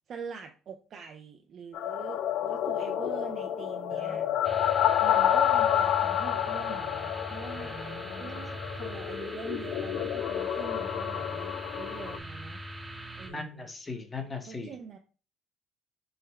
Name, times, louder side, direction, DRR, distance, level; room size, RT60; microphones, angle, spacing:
voice 1, 0.1-4.2 5.0-7.8 8.2-12.6 13.2-13.7 14.5-15.0, right 6 dB, 55° right, 4 dB, 0.4 m, -44 dB
sound 1, 1.7-12.2, left 10 dB, 70° left, 0.3 m, -29 dB
voice 2, 3.9-4.3 7.6-8.4 13.3-14.7, left 3 dB, 25° left, 5 dB, 0.9 m, -40 dB
sound 2, 4.4-13.3, right 1 dB, 10° right, 0.8 m, -41 dB
3.9 x 2.1 x 4.1 m, 0.36 s
supercardioid pair, 80°, 0 cm